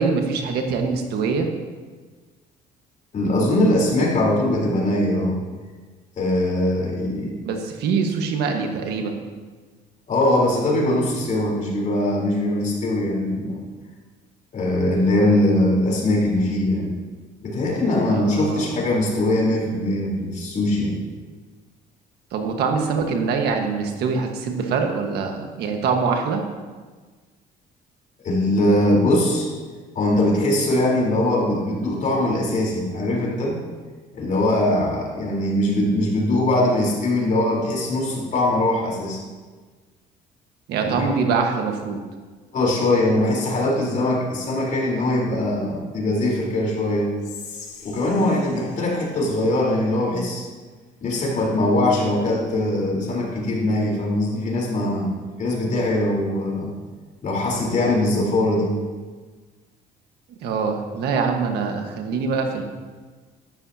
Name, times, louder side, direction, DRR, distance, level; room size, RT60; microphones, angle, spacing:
voice 1, 0.0-1.5 7.4-9.3 18.0-18.6 22.3-26.4 40.7-42.0 60.4-62.6, right 5 dB, 75° right, 3 dB, 1.5 m, -24 dB
voice 2, 3.1-5.4 6.2-7.3 10.1-13.6 14.5-16.9 17.4-21.0 28.2-29.5 29.9-33.6 34.1-39.2 41.0-41.1 42.5-47.1 47.8-50.5 51.0-55.1 55.4-56.7 57.2-58.7, left 1 dB, 50° left, -3 dB, 3.9 m, -21 dB
Whispering, 47.2-50.4, left 6 dB, 85° left, 2.4 m, -43 dB
13.5 x 12.5 x 2.8 m, 1.4 s
cardioid pair, 110°, 17 cm